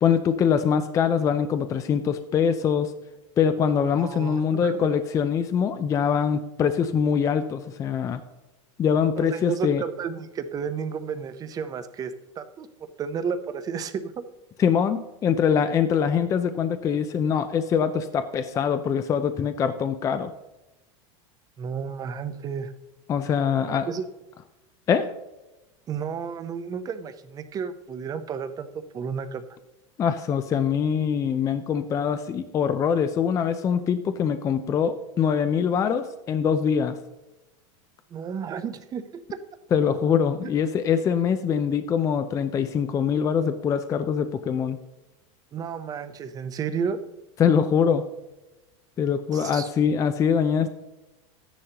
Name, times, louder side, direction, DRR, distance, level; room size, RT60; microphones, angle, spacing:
voice 1, 0.0-2.9 3.4-8.2 8.8-9.8 14.6-20.3 23.1-23.9 24.9-25.1 30.0-37.0 39.7-44.8 47.4-48.0 49.0-50.7, left 7 dB, 20° left, 10 dB, 0.4 m, -23 dB
voice 2, 4.0-4.9 9.2-12.7 13.0-14.1 21.6-22.7 23.5-24.1 25.9-28.7 28.9-29.4 38.1-39.4 40.4-40.5 45.5-47.0 49.3-49.7, right 6 dB, 25° right, 10 dB, 0.7 m, -32 dB
12.5 x 10.0 x 2.9 m, 1.0 s
supercardioid pair, 145°, 16 cm